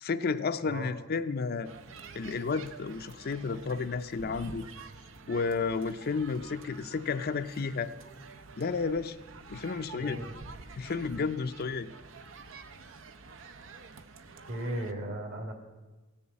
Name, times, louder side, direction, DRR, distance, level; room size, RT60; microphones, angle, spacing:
voice 1, 0.0-1.7 2.1-4.6 5.3-7.9 8.6-9.2 9.5-10.2 10.8-11.9, left 4 dB, 50° left, 11 dB, 0.5 m, -32 dB
sound 1, 1.6-14.9, right 4 dB, 75° right, 0.8 m, -48 dB
voice 2, 9.9-10.3 14.5-15.5, right 1 dB, 55° right, 4 dB, 2.3 m, -36 dB
15.5 x 7.0 x 8.4 m, 1.2 s
head